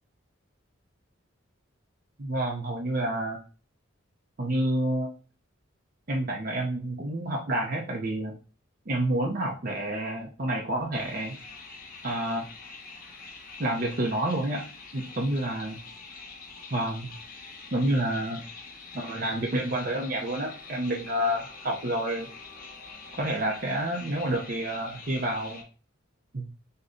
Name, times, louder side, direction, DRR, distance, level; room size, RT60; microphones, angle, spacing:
voice 1, 2.2-3.4 4.4-5.1 6.1-8.3 8.9-11.3 12.0-12.5 13.6-14.6 14.9-15.8 16.7-17.1 17.7-18.4 18.9-22.3 23.2-25.6 26.3-26.4, right 1 dB, 45° right, -1 dB, 0.6 m, -29 dB
sound 1, 10.9-25.6, left 4 dB, 40° left, 0.8 m, -45 dB
6.3 x 2.2 x 2.6 m, 0.36 s
head